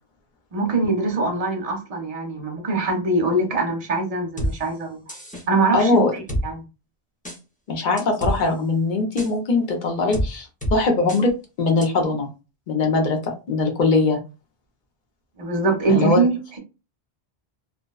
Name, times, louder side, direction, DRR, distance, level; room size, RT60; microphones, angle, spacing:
voice 1, 0.5-5.0 5.5-6.6 15.4-16.6, right 3 dB, 40° right, 0.7 m, -23 dB
sound 1, 4.4-4.5 5.1-5.4 6.3-6.4 7.2-7.4 8.0-8.4 9.2-9.3 10.1-10.3 10.6-10.7 11.1-11.2 11.8-11.9, equal, 10° left, 0.5 m, -25 dB
voice 2, 5.7-6.1 7.7-11.3 11.6-12.3 12.7-14.2 15.9-16.2, left 3 dB, 55° left, 0.8 m, -21 dB
2.5 x 2.1 x 2.3 m
omnidirectional pair, 1.0 m